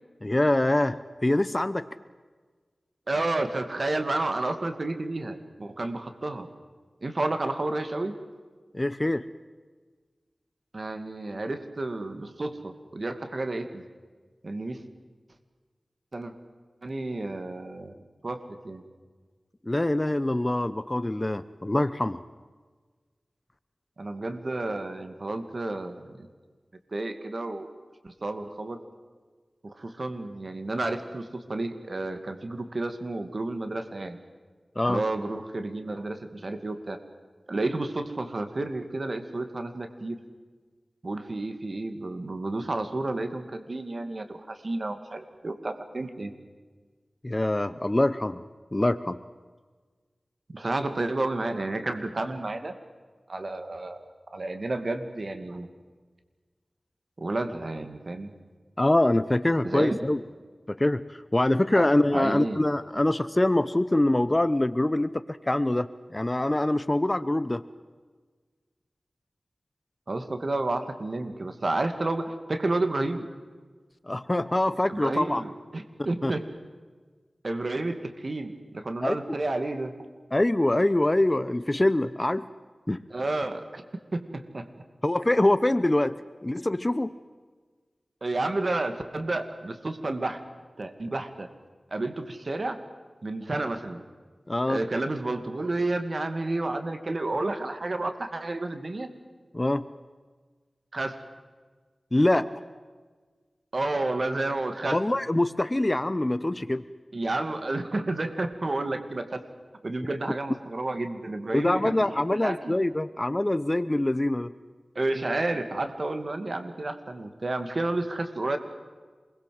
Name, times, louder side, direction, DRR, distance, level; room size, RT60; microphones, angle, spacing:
voice 1, 0.2-1.9 8.7-9.2 19.7-22.2 34.8-35.0 47.2-48.4 48.7-49.2 58.8-60.2 60.7-67.6 74.1-75.4 76.2-76.3 79.0-79.2 80.3-82.5 82.9-83.0 85.0-86.2 86.4-87.1 94.5-94.8 99.5-99.9 102.1-102.5 104.9-106.8 111.5-114.5, left 1 dB, 25° left, 14 dB, 0.9 m, -24 dB
voice 2, 3.1-6.5 7.0-8.2 10.7-13.8 14.4-14.8 16.1-16.3 16.8-18.0 18.2-18.8 24.0-26.3 26.9-27.7 28.0-28.8 29.6-34.2 34.8-37.0 37.5-40.2 41.0-46.3 50.5-52.7 53.3-54.0 54.3-55.7 57.2-58.3 59.6-60.1 61.7-62.6 70.1-73.3 74.9-76.5 77.4-79.9 83.1-83.8 84.1-84.7 88.2-90.4 90.8-91.5 91.9-92.8 93.2-94.0 94.7-99.1 100.9-101.2 103.7-105.0 107.1-109.4 109.8-112.8 114.9-118.6, right 2 dB, 55° right, 8 dB, 2.4 m, -31 dB
27.5 x 22.0 x 7.8 m, 1.4 s
wide cardioid pair, 55°, 0 cm